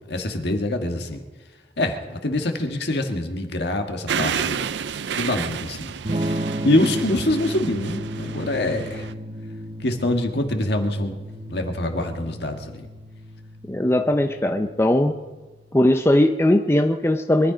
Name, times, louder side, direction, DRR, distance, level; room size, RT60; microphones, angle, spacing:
voice 1, 0.1-1.2 1.8-4.7 5.1-9.1 9.8-11.2 11.5-12.9, left 1 dB, 60° left, 4 dB, 1.7 m, -25 dB
sound 1, 4.1-9.1, right 7 dB, 70° right, 0.5 m, -30 dB
Electric guitar / Strum, 6.1-15.8, right 1 dB, 30° right, 0.7 m, -33 dB
voice 2, 13.7-15.1 15.7-17.5, left 1 dB, 15° left, 5 dB, 0.6 m, -19 dB
23.0 x 11.5 x 5.1 m, 1.2 s
head